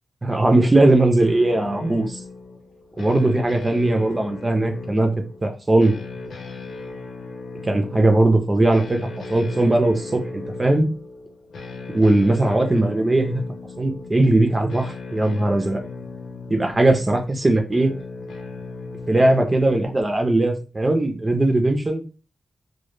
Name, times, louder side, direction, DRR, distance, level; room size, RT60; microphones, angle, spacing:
voice 1, 0.2-2.2 3.0-5.1 5.4-5.9 7.6-9.0 9.3-10.9 11.9-13.4 13.8-15.8 16.5-17.9 19.1-22.0, right 2 dB, 20° right, 4 dB, 0.3 m, -19 dB
sound 1, 1.2-20.0, left 3 dB, 85° left, 0.5 m, -37 dB
2.1 x 2.0 x 3.0 m, 0.33 s
wide cardioid pair, 180°, 0 cm